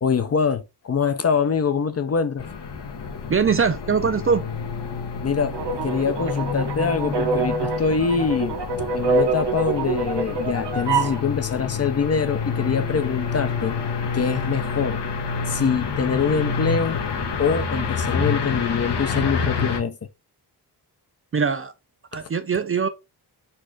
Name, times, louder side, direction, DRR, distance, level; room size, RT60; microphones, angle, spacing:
voice 1, 0.0-2.5 5.2-8.6 8.9-13.8 14.1-15.0 15.5-17.0 17.4-20.0, left 6 dB, 40° left, 0.4 m, -24 dB
sound 1, 2.4-19.8, left 5 dB, 85° left, 1.2 m, -28 dB
voice 2, 3.3-4.5 21.3-21.7 22.1-22.9, right 6 dB, 35° right, 0.4 m, -22 dB
sound 2, 5.5-11.2, right 4 dB, 80° right, 0.9 m, -25 dB
4.4 x 2.4 x 4.4 m
wide cardioid pair, 145°, 41 cm